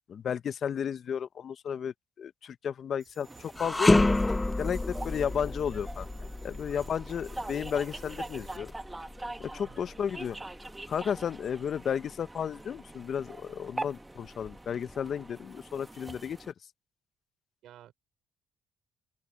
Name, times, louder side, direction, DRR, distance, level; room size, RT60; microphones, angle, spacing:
voice 1, 0.1-8.7 9.0-9.1 9.4-10.4 10.9-16.5, left 8 dB, 55° left, 0.6 m, -33 dB
sound 1, 3.0-8.6, right 5 dB, 40° right, 4.9 m, -55 dB
sound 2, 3.2-16.5, right 2 dB, 15° right, 1.5 m, -44 dB
sound 3, 3.5-12.8 13.2-13.4 14.3-15.1, left 2 dB, 15° left, 0.4 m, -30 dB
voice 2, 9.6-10.1 17.6-17.9, right 12 dB, 80° right, 4.0 m, -54 dB
open air
cardioid pair, 90°, 0 cm